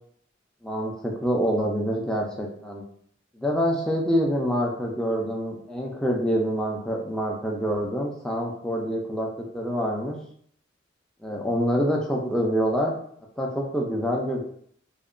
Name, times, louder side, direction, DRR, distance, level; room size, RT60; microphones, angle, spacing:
voice 1, 0.6-2.8 3.3-9.3 9.5-10.2 11.2-12.9 13.4-14.4, equal, 5° left, -2 dB, 0.3 m, -26 dB
2.7 x 2.1 x 2.4 m, 0.63 s
head